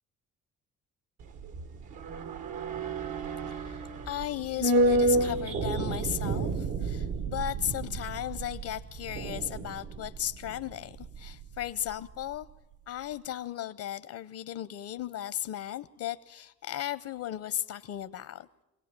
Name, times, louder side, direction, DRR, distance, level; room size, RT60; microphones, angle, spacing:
sound 1, 1.2-11.7 11.9-12.0, right 2 dB, 85° right, 1.7 m, -31 dB
voice 1, 3.5-12.5 12.9-18.5, left 11 dB, 80° left, 14 dB, 0.8 m, -36 dB
24.0 x 17.5 x 8.9 m, 0.99 s
cardioid pair, 90°, 30 cm